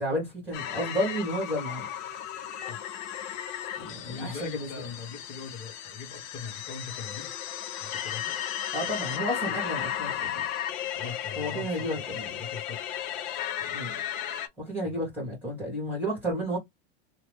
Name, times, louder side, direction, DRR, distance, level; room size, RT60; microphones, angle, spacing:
voice 1, 0.0-1.9 3.8-4.7 8.7-10.4 11.4-12.4 13.7-14.0 14.6-16.6, equal, 5° right, 1.4 m, -32 dB
sound 1, 0.5-14.5, left 10 dB, 60° left, 0.6 m, -35 dB
voice 2, 4.0-7.3 7.8-8.4 10.9-12.8 13.6-13.9 14.8-15.0, left 5 dB, 35° left, 1.0 m, -41 dB
2.9 x 2.1 x 3.2 m
supercardioid pair, 150°, 29 cm